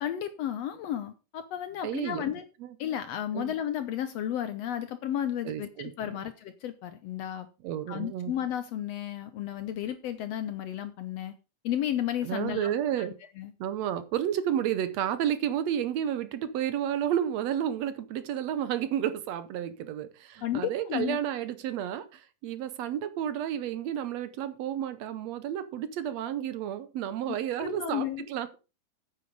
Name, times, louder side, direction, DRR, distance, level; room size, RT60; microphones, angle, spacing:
voice 1, 0.0-2.4 2.8-7.5 7.9-11.3 11.6-12.7 13.0-13.1 13.4-13.5 20.4-21.2 27.6-28.3, left 10 dB, 75° left, 1.6 m, -33 dB
voice 2, 1.8-2.3 2.6-2.7 3.3-3.5 5.5-6.2 7.6-8.3 12.2-13.1 13.6-28.6, right 10 dB, 70° right, 1.9 m, -31 dB
9.3 x 8.6 x 5.1 m
omnidirectional pair, 3.6 m